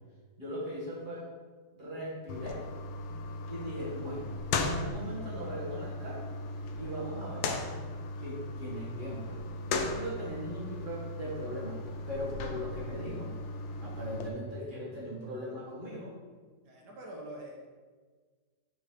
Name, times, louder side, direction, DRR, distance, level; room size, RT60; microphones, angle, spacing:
voice 1, 0.4-1.3 1.7-2.6 3.5-6.3 6.8-7.5 8.2-9.4 9.6-13.4 13.8-16.1, equal, 25° right, -8 dB, 2.1 m, -39 dB
sound 1, 2.3-14.3, left 3 dB, 85° left, 1.3 m, -37 dB
voice 2, 16.6-17.7, right 1 dB, 65° right, -1 dB, 1.6 m, -45 dB
4.7 x 4.7 x 4.6 m, 1.5 s
omnidirectional pair, 2.0 m